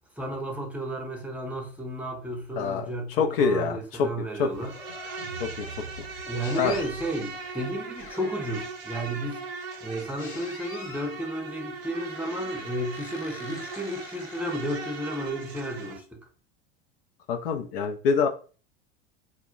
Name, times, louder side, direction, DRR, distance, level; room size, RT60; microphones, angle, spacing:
voice 1, 0.2-4.8 6.3-9.4 9.8-16.2, right 1 dB, 5° right, 0.7 m, -33 dB
voice 2, 2.6-4.1 4.4-4.5 5.4-5.7 6.6-6.8 17.3-18.3, left 5 dB, 65° left, 0.5 m, -25 dB
Livestock farm animals working animals, 3.9-8.9, right 2 dB, 90° left, 1.2 m, -45 dB
Insect, 4.5-16.0, right 4 dB, 65° right, 0.7 m, -39 dB
sound 1, 6.4-6.9 8.0-8.7 10.2-11.2 11.9-15.4, left 5 dB, 40° left, 0.9 m, -45 dB
2.1 x 2.1 x 3.7 m
hypercardioid pair, 85°, 31 cm